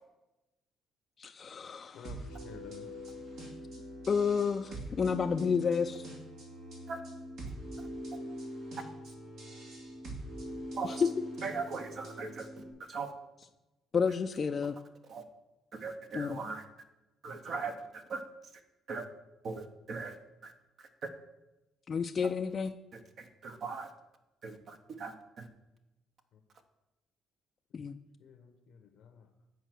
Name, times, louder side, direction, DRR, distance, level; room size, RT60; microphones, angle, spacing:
voice 1, 1.2-2.0 4.1-6.1 10.8-11.1 13.9-14.7 16.1-16.4 21.9-22.7 27.7-28.0, left 6 dB, 45° left, 7 dB, 0.4 m, -30 dB
voice 2, 1.9-3.1 26.3-26.4 27.7-27.8 28.2-29.3, left 7 dB, 70° left, 4 dB, 0.8 m, -52 dB
sound 1, 2.0-12.7, equal, 75° right, 2.8 m, -43 dB
voice 3, 11.4-13.1 15.1-15.2 15.7-16.6 17.2-18.2 18.9-19.0 19.4-20.2 20.4-20.5 20.8-20.9 23.2-23.9 24.4-25.5, right 4 dB, 55° right, 6 dB, 1.0 m, -39 dB
8.1 x 4.5 x 6.2 m, 1.0 s
supercardioid pair, 75°, 0 cm